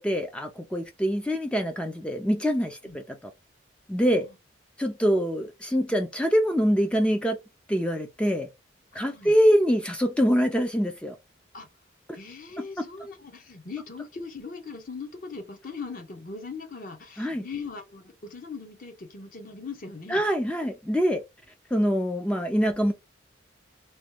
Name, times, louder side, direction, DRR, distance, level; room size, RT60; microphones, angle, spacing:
voice 1, 0.0-2.8 3.1-3.2 3.9-4.3 4.8-7.4 7.7-8.5 8.9-11.1 17.2-17.4 20.1-21.2 21.7-22.9, equal, 5° left, 0.3 m, -24 dB
voice 2, 8.9-9.4 11.5-11.7 12.1-20.2, left 4 dB, 45° left, 0.8 m, -40 dB
3.0 x 2.2 x 3.2 m
head